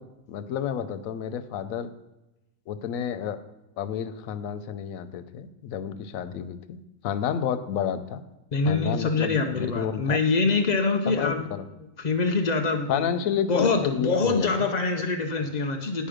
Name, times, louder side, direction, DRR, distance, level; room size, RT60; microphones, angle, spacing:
voice 1, 0.3-1.9 2.7-3.4 3.8-8.2 8.7-10.2 11.1-11.6 12.9-14.7, left 8 dB, 70° left, 11 dB, 0.9 m, -30 dB
voice 2, 8.5-11.5 12.0-13.1 13.5-16.1, left 3 dB, 85° left, 4 dB, 0.3 m, -25 dB
9.3 x 5.4 x 5.0 m, 0.97 s
omnidirectional pair, 1.6 m